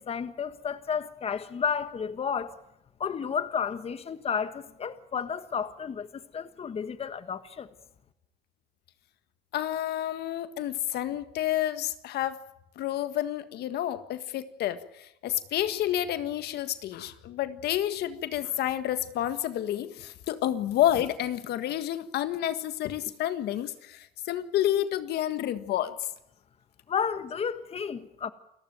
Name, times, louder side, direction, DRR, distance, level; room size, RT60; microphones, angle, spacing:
voice 1, 0.0-2.6 3.0-7.7 26.9-28.3, left 7 dB, 35° left, 1.4 m, -32 dB
voice 2, 9.5-12.4 12.7-25.9, left 12 dB, 75° left, 1.6 m, -29 dB
29.0 x 14.5 x 9.2 m
cardioid pair, 110°, 17 cm